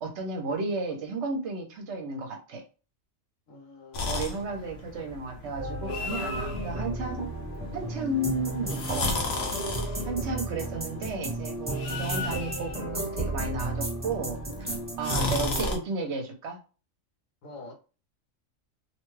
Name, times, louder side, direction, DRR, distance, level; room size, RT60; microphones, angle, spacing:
voice 1, 0.0-2.6 4.0-7.3 7.7-9.2 10.0-16.6, right 2 dB, 60° right, 4 dB, 0.9 m, -33 dB
voice 2, 3.5-4.4 17.4-17.7, left 2 dB, 75° left, 2 dB, 1.2 m, -47 dB
sound 1, 3.9-15.8, left 3 dB, 60° left, 0.8 m, -36 dB
sound 2, 5.6-15.7, right 2 dB, 10° right, 0.8 m, -33 dB
2.8 x 2.2 x 3.1 m, 0.34 s
omnidirectional pair, 1.4 m